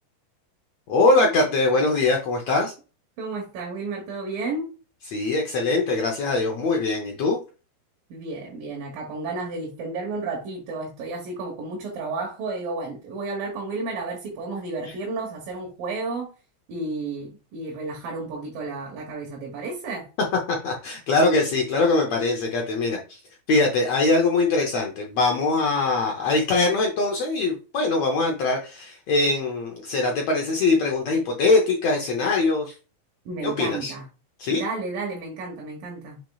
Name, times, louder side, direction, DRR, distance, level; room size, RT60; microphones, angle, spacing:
voice 1, 0.9-2.7 5.1-7.4 20.5-23.2 23.5-32.7 33.4-33.9 34.4-34.6, left 3 dB, 80° left, 1.5 m, -22 dB
voice 2, 3.2-4.7 8.1-16.3 16.7-20.1 33.3-34.0 34.5-36.2, right 3 dB, 70° right, 2.9 m, -32 dB
6.5 x 6.1 x 2.4 m
omnidirectional pair, 4.2 m